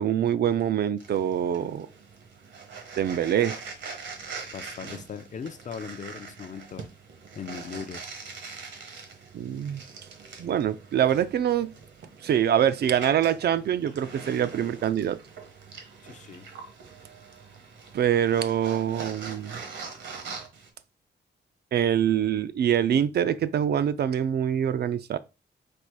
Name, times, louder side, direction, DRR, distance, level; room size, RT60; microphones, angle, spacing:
voice 1, 0.0-1.9 3.0-3.6 9.3-9.8 10.4-11.7 12.2-15.2 17.9-19.6 21.7-25.2, right 9 dB, 60° right, 0.4 m, -24 dB
sound 1, 1.0-20.7, right 5 dB, 80° right, 1.1 m, -43 dB
voice 2, 4.5-6.9 7.3-8.1 16.0-16.5, left 6 dB, 40° left, 0.4 m, -39 dB
4.2 x 2.4 x 4.7 m
wide cardioid pair, 135°, 19 cm